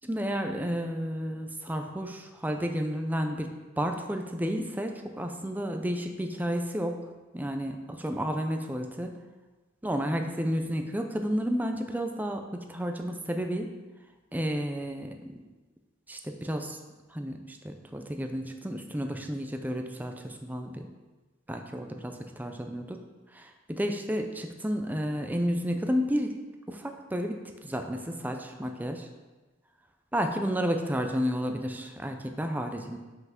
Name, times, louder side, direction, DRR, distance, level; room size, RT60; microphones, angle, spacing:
voice 1, 0.0-3.5 3.8-7.1 7.3-7.8 8.0-9.2 9.8-13.7 14.3-15.4 16.1-16.8 17.1-20.9 21.5-23.0 23.3-26.3 26.7-29.1 30.1-33.0, equal, 10° right, 5 dB, 0.6 m, -31 dB
5.8 x 5.7 x 5.8 m, 1.2 s
head